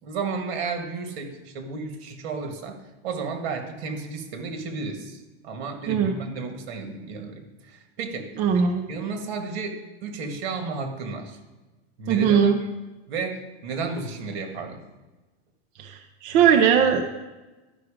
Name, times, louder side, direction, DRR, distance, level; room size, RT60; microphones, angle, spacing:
voice 1, 0.0-2.8 3.0-5.2 5.4-8.3 8.9-11.4 12.0-12.5 13.1-14.8, right 4 dB, 65° right, 5 dB, 2.0 m, -32 dB
voice 2, 8.4-8.9 12.1-12.6 15.8-17.0, right 7 dB, 30° right, 4 dB, 0.5 m, -20 dB
12.5 x 5.9 x 5.0 m, 1.1 s
supercardioid pair, 170°, 33 cm